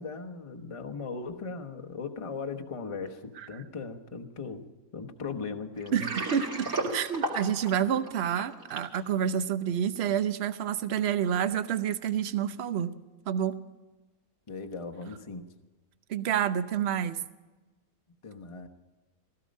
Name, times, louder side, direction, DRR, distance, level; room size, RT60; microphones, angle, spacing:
voice 1, 0.0-4.7 4.9-6.1 14.5-15.4 18.2-18.7, left 4 dB, 25° left, 4 dB, 1.0 m, -38 dB
Water, 5.8-9.0, right 2 dB, 80° right, 3.1 m, -33 dB
voice 2, 5.9-12.9 13.3-13.5 16.1-17.2, right 9 dB, 55° right, 12 dB, 0.9 m, -28 dB
16.5 x 14.5 x 5.3 m, 1.2 s
omnidirectional pair, 1.5 m